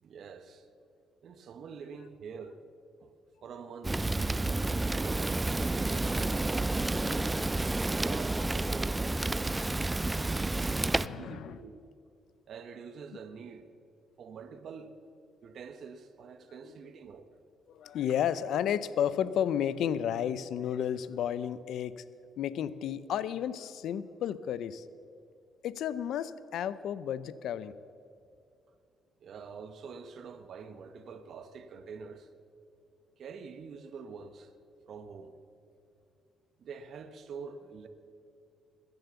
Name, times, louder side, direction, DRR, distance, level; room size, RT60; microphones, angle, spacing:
voice 1, 0.0-0.7 1.2-2.6 3.0-3.1 3.4-4.1 4.9-7.3 8.0-9.2 9.9-10.6 11.1-11.8 12.5-13.7 14.2-14.9 15.4-17.3 29.2-32.3 33.2-34.5 34.9-35.3 36.6-37.9, right 5 dB, 65° right, 0.9 m, -46 dB
Fire, 3.8-11.1, right 2 dB, 15° right, 0.3 m, -30 dB
voice 2, 11.0-11.6 17.7-22.0 22.4-24.9 25.6-27.7, left 9 dB, 75° left, 0.5 m, -32 dB
21.0 x 7.9 x 6.9 m
cardioid pair, 90°, 0 cm